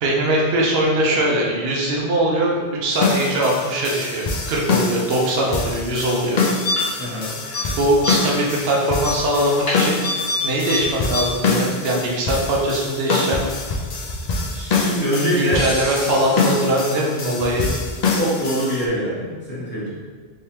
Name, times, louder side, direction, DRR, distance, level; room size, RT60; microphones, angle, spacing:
voice 1, 0.0-6.4 7.8-10.0 10.4-13.5 15.4-17.7, right 1 dB, 65° right, -2 dB, 0.9 m, -21 dB
sound 1, 2.9-18.9, left 3 dB, 55° left, 0.4 m, -25 dB
sound 2, 6.6-7.1 7.4-7.7 8.0-8.4 9.0-10.4 10.7-10.8 11.1-11.2, left 2 dB, 30° left, 1.3 m, -25 dB
voice 2, 7.0-7.3 14.5-15.6 18.1-19.9, equal, 10° left, -10 dB, 0.9 m, -24 dB
3.6 x 3.1 x 2.8 m, 1.5 s
omnidirectional pair, 1.1 m